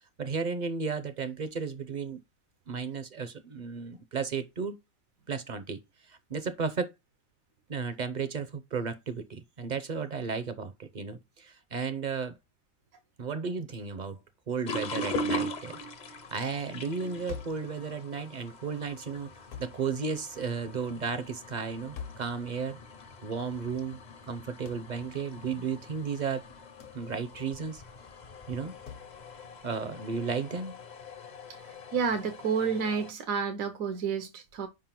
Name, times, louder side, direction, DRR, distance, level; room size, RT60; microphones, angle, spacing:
voice 1, 0.2-2.2 2.7-4.8 5.3-5.8 6.1-6.9 7.7-12.3 13.2-14.2 14.5-15.8 16.3-19.3 19.6-22.8 23.2-24.0 24.3-26.4 26.9-27.8 28.5-28.7 29.6-30.8, right 5 dB, 45° right, 0.6 m, -34 dB
sound 1, 14.7-33.1, left 1 dB, 45° left, 0.6 m, -41 dB
sound 2, 17.3-17.7 19.5-19.8 22.0-22.3 24.7-24.9 26.8-27.0 28.9-29.1, left 7 dB, 70° left, 1.3 m, -42 dB
voice 2, 31.9-34.7, right 6 dB, 75° right, 1.1 m, -30 dB
5.2 x 3.8 x 5.8 m
omnidirectional pair, 1.4 m